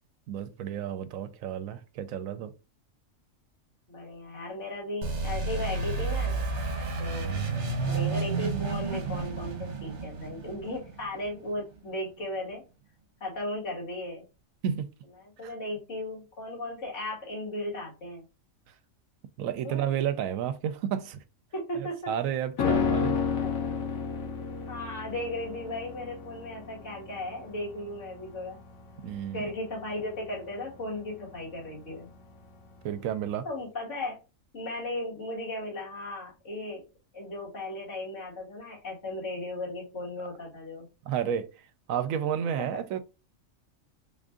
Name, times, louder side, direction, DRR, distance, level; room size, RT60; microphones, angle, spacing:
voice 1, 0.3-2.5 14.6-14.9 15.4-15.5 19.4-21.2 21.8-23.1 29.0-29.5 32.8-33.5 41.1-41.5 41.9-43.0, right 9 dB, 80° right, 1.0 m, -31 dB
voice 2, 3.9-6.4 7.0-7.4 7.8-12.6 13.2-14.3 15.2-18.2 19.6-19.9 21.5-22.1 23.1-23.6 24.7-28.6 29.3-32.1 33.4-34.2 34.5-36.8 37.1-40.9 42.6-42.8, left 1 dB, 60° left, 2.3 m, -36 dB
sound 1, 5.0-11.6, right 3 dB, 60° right, 1.2 m, -31 dB
sound 2, 22.6-32.0 32.3-32.4, left 6 dB, 85° left, 1.2 m, -32 dB
3.8 x 2.5 x 3.5 m
omnidirectional pair, 1.4 m